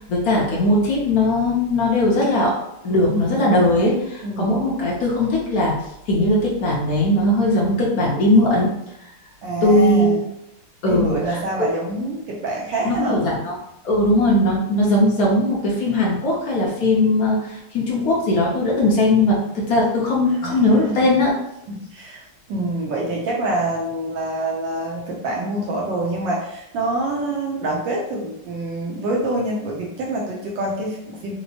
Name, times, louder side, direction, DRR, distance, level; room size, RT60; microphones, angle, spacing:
voice 1, 0.1-2.5 2.8-5.7 6.1-8.7 9.6-10.3 10.8-11.7 12.8-13.6 13.8-21.3, left 1 dB, 65° left, -4 dB, 1.0 m, -19 dB
voice 2, 3.1-3.5 4.2-4.6 9.4-10.2 10.9-13.2 20.4-21.0 21.7-22.2 22.5-31.3, right 1 dB, 70° right, -2 dB, 1.2 m, -26 dB
4.4 x 2.0 x 2.7 m, 0.82 s
omnidirectional pair, 2.3 m